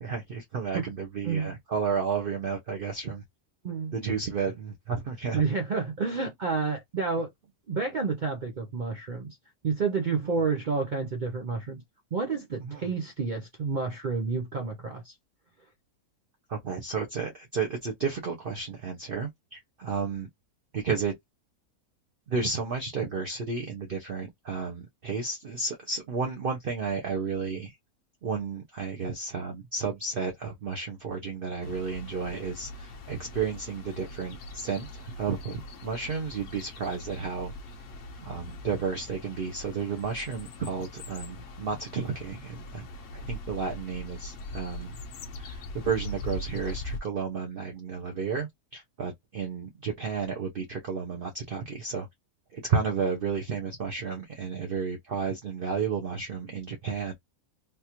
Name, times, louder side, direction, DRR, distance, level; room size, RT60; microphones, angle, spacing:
voice 1, 0.0-3.2 3.9-5.4 12.6-12.8 16.5-20.3 20.7-21.1 22.3-27.7 28.2-37.5 38.2-42.9 43.1-45.0 45.4-52.1 52.5-57.1, right 5 dB, 50° right, 0.7 m, -32 dB
voice 2, 1.2-1.6 3.6-3.9 5.3-7.3 7.7-9.4 9.6-11.8 12.1-15.1, right 4 dB, 85° right, 0.4 m, -30 dB
sound 1, 31.6-47.0, left 1 dB, 60° left, 1.0 m, -41 dB
3.5 x 2.5 x 2.9 m
omnidirectional pair, 1.6 m